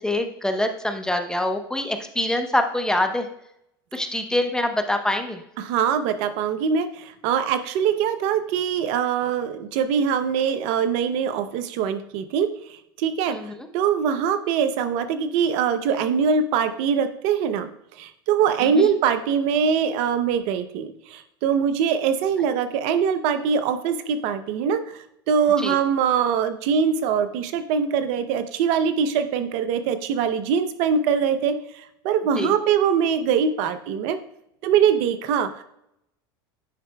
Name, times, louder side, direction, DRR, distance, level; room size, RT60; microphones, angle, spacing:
voice 1, 0.0-3.3 3.9-5.4 13.3-13.5 18.6-18.9 25.6-25.8 32.4-32.5, left 1 dB, 5° left, 6 dB, 0.8 m, -25 dB
voice 2, 5.6-17.7 18.0-34.2 34.6-35.6, right 7 dB, 60° right, 10 dB, 0.6 m, -23 dB
9.4 x 5.6 x 2.2 m, 0.77 s
hypercardioid pair, 90°, 12 cm